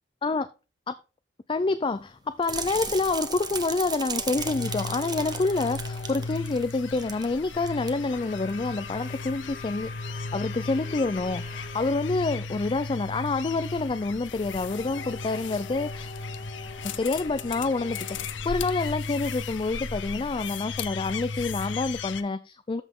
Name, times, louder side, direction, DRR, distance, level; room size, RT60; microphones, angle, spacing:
voice 1, 1.5-16.1 17.0-22.8, left 3 dB, 30° left, 0.4 m, -28 dB
sound 1, 2.4-6.3 8.0-12.1 14.4-19.3, left 3 dB, 50° left, 2.1 m, -44 dB
sound 2, 2.4-7.3 7.5-7.9 8.4-8.5, right 5 dB, 20° right, 1.0 m, -35 dB
sound 3, 4.4-22.2, left 4 dB, 75° left, 0.7 m, -36 dB
13.5 x 5.8 x 3.7 m
head